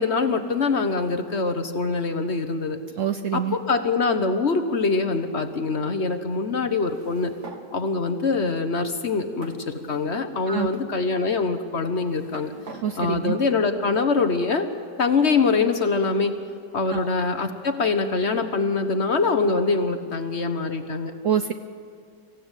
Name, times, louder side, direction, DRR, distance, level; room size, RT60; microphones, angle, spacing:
voice 1, 0.0-2.8 3.3-7.3 7.7-12.5 13.0-14.7 15.0-16.3 16.7-21.1, left 4 dB, 45° left, 8 dB, 1.3 m, -24 dB
voice 2, 3.0-3.6 10.5-10.7 12.8-13.3 16.9-17.1 21.2-21.5, right 9 dB, 60° right, 9 dB, 0.8 m, -25 dB
sound 1, 6.8-7.7 8.5-8.6 9.4-10.2 10.7-10.9 11.8-12.9, right 2 dB, 45° right, 2.0 m, -43 dB
25.5 x 15.5 x 8.1 m, 2.3 s
omnidirectional pair, 1.8 m